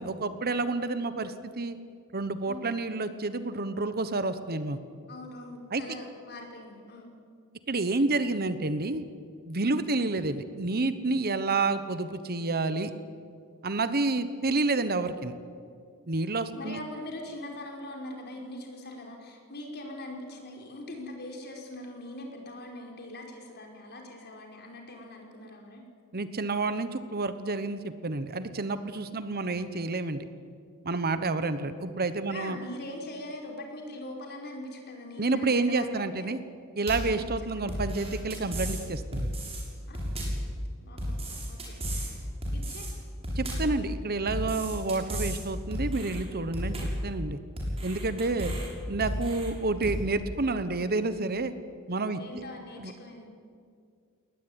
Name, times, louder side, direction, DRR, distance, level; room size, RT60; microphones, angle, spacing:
voice 1, 0.0-1.8 2.1-4.8 5.7-5.8 7.7-9.0 9.5-12.9 13.6-15.3 16.1-16.8 26.1-30.2 30.8-32.6 35.2-36.4 36.8-39.3 43.4-46.7 47.0-47.4 47.8-48.5 48.9-51.5 51.9-52.2 52.8-52.9, right 3 dB, 45° right, 11 dB, 1.1 m, -29 dB
voice 2, 5.1-7.1 16.5-25.8 32.3-36.3 37.0-37.3 37.6-37.8 39.9-40.0 40.8-42.2 42.5-42.9 48.4-48.6 52.2-53.3, left 1 dB, 50° left, 1 dB, 4.9 m, -42 dB
sound 1, 36.9-37.2 37.7-38.8 39.1-39.6 39.9-40.5 41.0-42.1 42.4-42.9 43.2-43.8 44.3-45.4 45.7-46.2 46.5-47.0 47.6-48.7 49.0-49.5 49.8-50.0, equal, 25° right, 6.4 m, -33 dB
21.5 x 19.0 x 9.9 m, 2.2 s
head